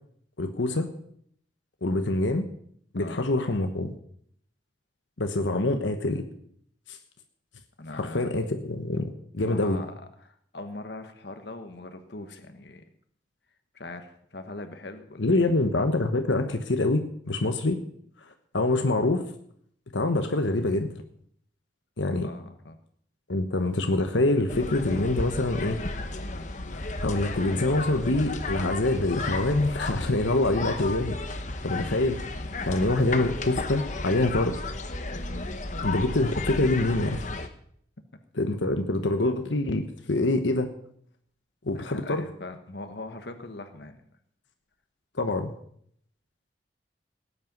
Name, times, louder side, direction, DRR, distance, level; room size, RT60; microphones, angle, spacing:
voice 1, 0.4-0.9 1.8-2.5 2.9-3.9 5.2-6.2 6.9-7.0 7.9-9.8 15.2-17.8 18.5-19.3 19.9-20.9 22.0-22.3 23.3-25.8 27.0-31.2 31.6-32.3 32.6-34.6 35.8-37.2 38.4-40.7 41.7-42.2 45.2-45.5, left 2 dB, 85° left, 6 dB, 1.1 m, -25 dB
voice 2, 7.8-8.3 9.4-12.8 13.7-15.6 22.2-22.8 41.7-44.0, left 2 dB, 65° left, 7 dB, 1.3 m, -41 dB
sound 1, 24.5-37.5, left 2 dB, 40° left, 1.1 m, -33 dB
18.0 x 8.8 x 5.4 m, 0.66 s
head